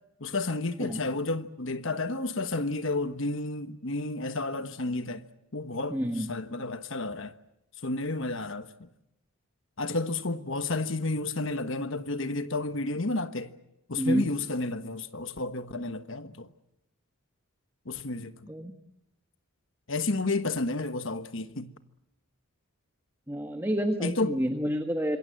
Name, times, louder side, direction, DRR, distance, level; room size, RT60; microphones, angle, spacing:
voice 1, 0.2-5.2 5.5-6.0 6.3-7.3 7.8-8.9 9.8-13.5 13.9-16.5 17.8-18.3 19.9-21.7 24.0-24.4, left 2 dB, 60° left, 1.3 m, -31 dB
voice 2, 5.9-6.3 14.0-14.3 18.5-18.7 23.3-25.2, equal, 10° right, 1.4 m, -29 dB
26.5 x 22.5 x 7.7 m
head